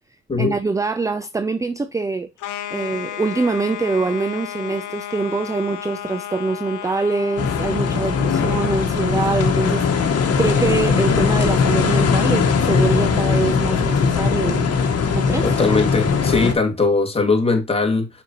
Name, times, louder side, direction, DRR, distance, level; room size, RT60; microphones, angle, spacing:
voice 1, 0.4-2.3 2.7-14.7 15.1-15.5, right 3 dB, 10° right, 0.4 m, -24 dB
sound 1, 2.4-8.9, left 11 dB, 80° left, 0.9 m, -33 dB
sound 2, 7.4-16.5, left 5 dB, 55° left, 1.4 m, -19 dB
voice 2, 15.4-18.1, left 3 dB, 20° left, 2.2 m, -20 dB
6.3 x 5.3 x 2.9 m
cardioid pair, 90°, 30 cm